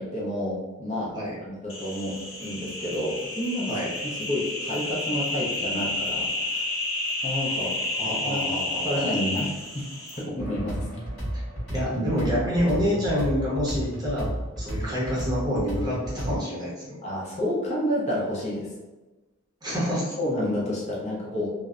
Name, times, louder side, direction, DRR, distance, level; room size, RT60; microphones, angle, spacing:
voice 1, 0.0-1.1 1.4-6.7 7.2-9.8 10.2-10.8 17.0-18.7 20.2-21.5, left 1 dB, 35° left, -5 dB, 0.6 m, -30 dB
sound 1, 1.7-10.2, left 2 dB, 85° left, 0.8 m, -31 dB
voice 2, 8.0-9.0 11.3-11.4 11.7-14.3 14.6-16.9 19.6-20.1, equal, 20° right, -6 dB, 0.7 m, -27 dB
sound 2, 10.4-16.4, equal, 5° left, 1.3 m, -32 dB
2.6 x 2.0 x 2.4 m, 1.2 s
head